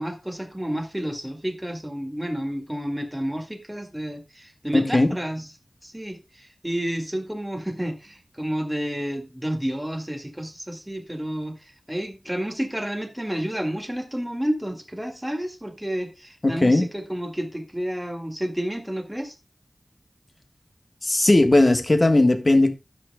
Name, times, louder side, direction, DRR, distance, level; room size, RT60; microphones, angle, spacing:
voice 1, 0.0-5.5 5.8-19.3, equal, 10° right, 2.0 m, -30 dB
voice 2, 4.7-5.1 16.4-16.9 21.0-22.7, left 2 dB, 40° left, 1.2 m, -18 dB
16.5 x 6.0 x 2.2 m
wide cardioid pair, 70°, 0 cm